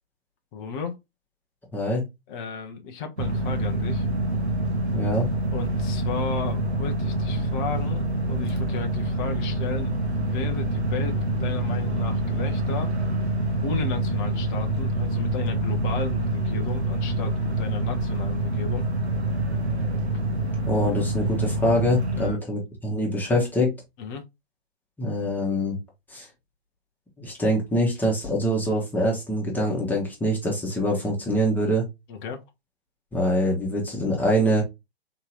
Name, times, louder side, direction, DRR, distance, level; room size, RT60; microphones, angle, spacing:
voice 1, 0.5-1.0 2.3-4.1 5.5-12.9 13.6-18.9 22.1-22.4 24.0-24.2 32.1-32.4, left 5 dB, 20° left, 0.5 m, -34 dB
voice 2, 1.7-2.0 4.9-5.3 20.7-23.7 25.0-25.8 26.1-26.3 27.2-31.9 33.1-34.6, equal, 5° left, 1.0 m, -24 dB
sound 1, 3.2-22.3, right 1 dB, 90° right, 1.2 m, -26 dB
3.7 x 2.8 x 3.0 m
figure-of-eight pair, 125°, 32 cm